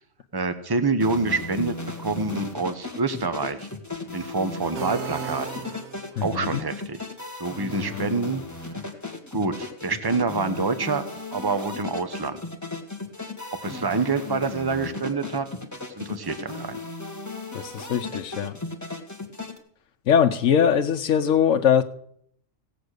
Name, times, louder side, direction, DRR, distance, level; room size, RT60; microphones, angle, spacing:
voice 1, 0.3-3.7 4.1-5.6 6.2-7.1 7.4-8.4 9.3-11.0 11.3-12.4 13.6-15.5 15.9-16.8, right 3 dB, 20° right, 10 dB, 1.0 m, -27 dB
sound 1, 1.0-19.6, left 2 dB, 15° left, 1.6 m, -36 dB
sound 2, 4.8-6.3, right 7 dB, 60° right, 1.3 m, -35 dB
voice 2, 6.2-6.7 7.7-8.1 17.5-18.6 20.1-21.8, left 8 dB, 80° left, 4 dB, 1.2 m, -22 dB
17.5 x 8.1 x 6.6 m, 0.67 s
omnidirectional pair, 1.3 m